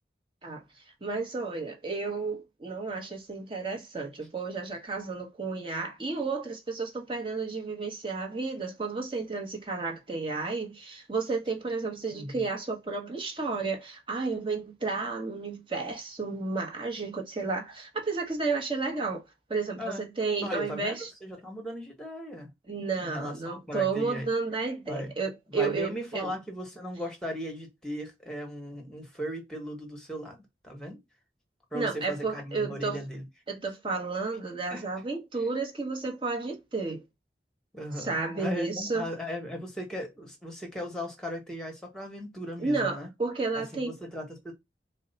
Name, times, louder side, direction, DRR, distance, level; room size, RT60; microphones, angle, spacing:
voice 1, 1.0-19.2 19.5-21.1 22.7-26.3 31.7-33.0 33.5-37.0 38.0-39.0 42.6-43.9, right 4 dB, 30° right, 1.0 m, -32 dB
voice 2, 12.1-12.4 19.8-20.1 20.4-22.5 23.0-24.3 24.8-25.1 25.5-31.0 31.7-33.2 34.7-34.8 37.7-43.1 43.5-44.5, equal, 5° left, 1.2 m, -37 dB
4.4 x 2.1 x 4.0 m
head